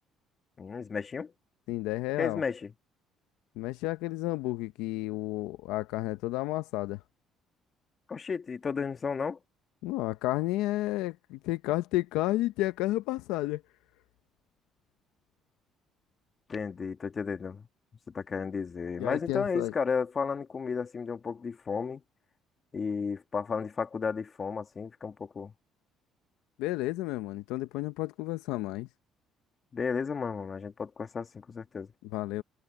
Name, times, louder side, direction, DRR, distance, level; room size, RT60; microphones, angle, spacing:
voice 1, 0.6-1.3 2.2-2.7 8.1-9.4 16.5-17.7 18.1-22.0 22.7-25.5 29.7-31.9, left 5 dB, 35° left, 1.8 m, -33 dB
voice 2, 1.7-2.4 3.6-7.0 9.8-13.6 19.0-19.7 26.6-28.9 32.1-32.4, left 17 dB, 90° left, 0.6 m, -31 dB
cardioid pair, 90°, 0 cm